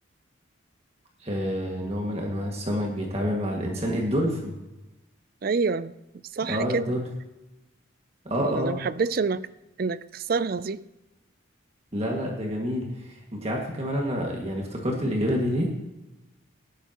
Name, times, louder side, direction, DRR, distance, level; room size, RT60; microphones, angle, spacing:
voice 1, 1.2-4.6 6.5-7.0 8.3-8.7 11.9-15.7, equal, 30° right, -1 dB, 2.0 m, -28 dB
voice 2, 5.4-5.9 6.3-6.9 8.4-9.5 9.8-10.8, right 4 dB, 45° right, 16 dB, 0.4 m, -27 dB
17.5 x 12.0 x 3.0 m, 1.0 s
head